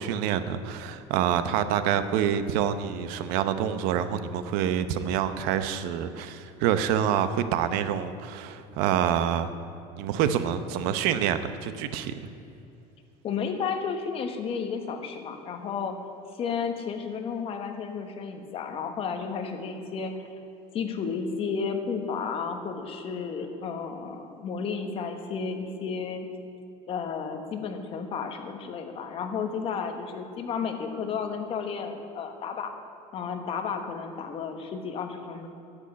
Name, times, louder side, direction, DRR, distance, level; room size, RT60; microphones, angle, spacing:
voice 1, 0.0-9.5 10.0-12.3, right 9 dB, 75° right, 11 dB, 0.8 m, -27 dB
voice 2, 13.2-16.0 16.4-20.1 20.7-26.2 26.9-32.7 33.1-35.5, left 6 dB, 40° left, 6 dB, 1.3 m, -32 dB
10.5 x 8.1 x 8.6 m, 2.8 s
cardioid pair, 160°, 15 cm